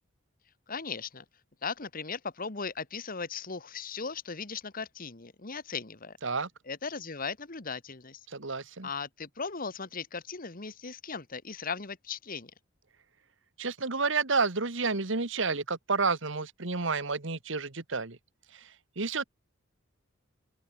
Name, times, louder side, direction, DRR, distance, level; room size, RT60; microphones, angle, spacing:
voice 1, 0.7-1.2 1.6-6.2 6.7-8.2 8.8-12.5, left 5 dB, 45° left, 1.7 m, -37 dB
voice 2, 8.3-8.9 13.6-18.2 18.5-19.2, right 4 dB, 65° right, 1.7 m, -30 dB
open air
head